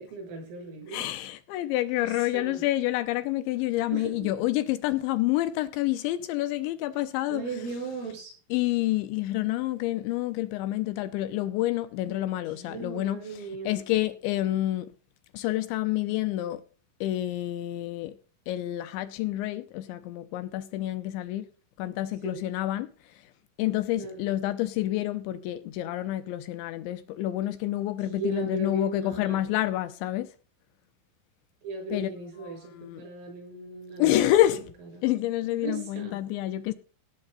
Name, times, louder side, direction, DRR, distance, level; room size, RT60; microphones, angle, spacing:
voice 1, 0.0-1.1 2.0-2.6 3.9-4.3 7.3-8.3 12.5-13.8 22.2-22.4 24.0-24.3 28.0-29.5 31.6-34.2 34.9-35.1 35.5-36.2, right 3 dB, 85° right, 9.3 m, -37 dB
voice 2, 0.9-7.4 8.5-13.2 13.7-14.9 15.3-16.6 17.0-18.2 18.5-21.5 21.8-22.9 23.6-30.3 31.9-32.1 32.4-33.0 34.0-34.7 35.0-36.7, left 14 dB, 80° left, 2.8 m, -28 dB
18.0 x 7.8 x 4.0 m
omnidirectional pair, 5.7 m